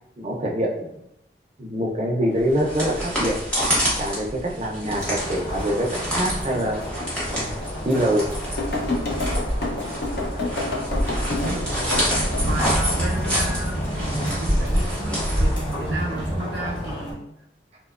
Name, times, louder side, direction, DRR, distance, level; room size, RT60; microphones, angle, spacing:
voice 1, 0.2-0.9 1.6-3.4 4.0-6.8 7.3-7.5 7.8-8.3, equal, 35° right, -1 dB, 0.4 m, -24 dB
sound 1, 2.4-16.1, equal, 5° left, 0.8 m, -27 dB
sound 2, 4.9-17.1, equal, 25° left, 1.1 m, -31 dB
sound 3, 7.0-7.1 7.7-7.8 8.6-12.8 13.2-13.9 14.5-14.9, left 2 dB, 60° left, 0.5 m, -28 dB
voice 2, 11.2-17.3, right 2 dB, 80° right, -2 dB, 0.6 m, -33 dB
2.7 x 2.2 x 2.3 m, 0.78 s
head